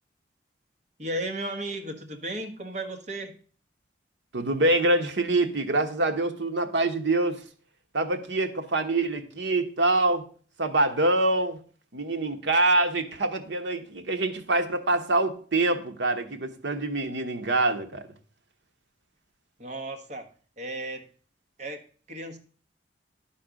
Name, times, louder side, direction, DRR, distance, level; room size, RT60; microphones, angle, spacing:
voice 1, 1.0-3.3 19.6-20.3 20.6-21.1 21.6-22.4, right 1 dB, 40° right, 3 dB, 1.2 m, -35 dB
voice 2, 4.3-7.4 7.9-10.2 10.6-11.6 11.9-18.0, right 2 dB, 80° right, 6 dB, 1.0 m, -25 dB
11.5 x 4.2 x 5.1 m, 0.42 s
head